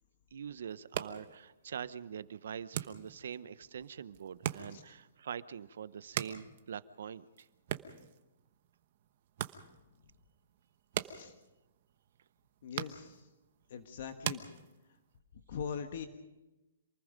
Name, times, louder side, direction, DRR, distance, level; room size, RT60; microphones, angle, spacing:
voice 1, 0.3-7.5, right 8 dB, 65° right, 15 dB, 0.8 m, -44 dB
sound 1, 0.7-15.2, right 11 dB, 40° right, 1.1 m, -44 dB
voice 2, 11.0-11.3 12.6-13.3 13.7-14.4 14.9-15.0 15.5-16.1, left 7 dB, 45° left, 7 dB, 1.5 m, -42 dB
27.5 x 20.0 x 5.2 m, 1.0 s
hypercardioid pair, 170°, 0 cm